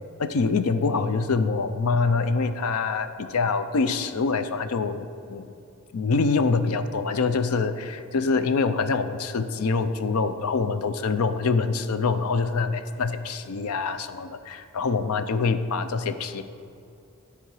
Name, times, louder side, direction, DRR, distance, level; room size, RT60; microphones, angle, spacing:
voice 1, 0.2-5.5 5.9-16.4, left 4 dB, 85° left, 11 dB, 0.5 m, -25 dB
11.5 x 4.9 x 4.8 m, 2.6 s
head